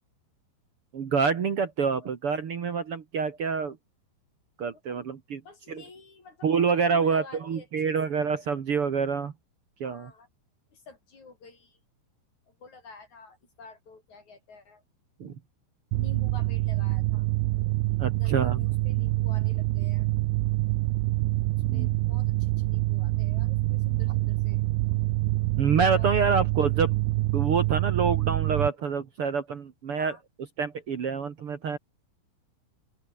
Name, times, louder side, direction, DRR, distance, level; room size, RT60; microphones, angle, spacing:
voice 1, 0.9-3.8 4.6-5.4 5.7-5.8 6.4-9.3 9.8-10.1 15.2-15.3 18.0-18.6 21.6-21.9 25.6-26.9 27.3-30.2 30.6-31.8, right 5 dB, 65° right, 1.4 m, -27 dB
voice 2, 5.4-8.4 9.8-10.3 10.7-11.8 12.5-14.8 15.9-17.3 18.0-20.1 21.7-24.6 25.9-26.3 29.9-30.2, left 4 dB, 40° left, 8.0 m, -49 dB
Mechanical fan, 15.9-28.7, right 19 dB, 85° right, 2.2 m, -26 dB
omnidirectional pair, 5.3 m